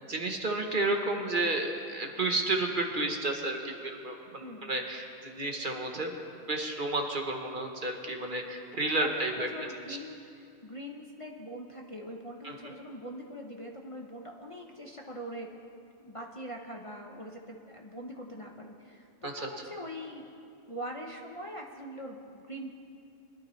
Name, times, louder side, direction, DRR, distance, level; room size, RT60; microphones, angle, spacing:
voice 1, 0.1-6.2 6.5-9.5 9.9-10.0 12.4-12.7 19.2-19.5, right 2 dB, 45° right, 3 dB, 1.1 m, -31 dB
voice 2, 4.4-4.8 9.0-15.5 16.0-20.3 20.7-22.7, equal, 30° left, 0 dB, 0.8 m, -42 dB
22.5 x 12.0 x 3.2 m, 2.5 s
omnidirectional pair, 1.3 m